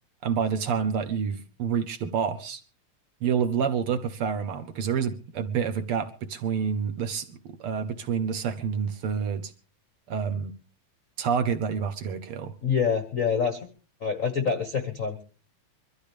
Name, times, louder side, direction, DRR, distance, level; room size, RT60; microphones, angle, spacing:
voice 1, 0.2-2.6 3.2-9.5 10.1-10.5 11.2-12.5, right 7 dB, 70° right, 9 dB, 1.4 m, -28 dB
voice 2, 12.6-13.6 14.0-15.2, left 6 dB, 70° left, 7 dB, 0.7 m, -26 dB
23.5 x 13.5 x 3.5 m, 0.38 s
omnidirectional pair, 3.5 m